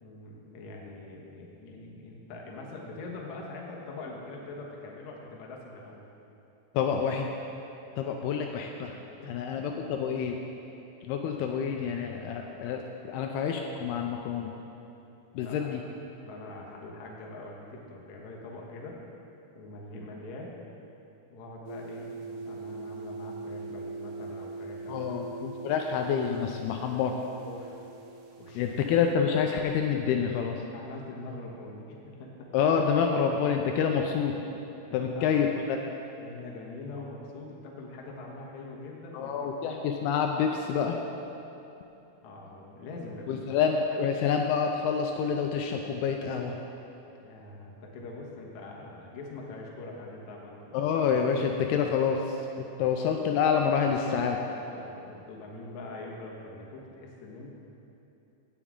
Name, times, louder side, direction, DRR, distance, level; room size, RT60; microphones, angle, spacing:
voice 1, 0.0-6.1 9.2-9.4 15.4-15.7 16.2-19.0 19.6-20.6 21.3-25.2 27.5-27.8 28.3-28.7 30.7-32.5 34.9-35.4 36.2-39.5 42.2-44.1 47.0-50.7 54.6-57.6, left 2 dB, 65° left, -2 dB, 2.0 m, -43 dB
voice 2, 6.7-7.3 8.0-9.0 9.3-10.4 11.0-14.5 15.4-15.8 24.9-27.2 28.6-30.6 32.5-34.4 34.9-35.8 39.1-41.0 43.3-46.6 50.7-54.4, left 7 dB, 80° left, 3 dB, 2.5 m, -27 dB
sound 1, 21.7-29.1, right 3 dB, 75° right, 2.1 m, -42 dB
16.5 x 7.2 x 3.7 m, 2.9 s
omnidirectional pair, 4.7 m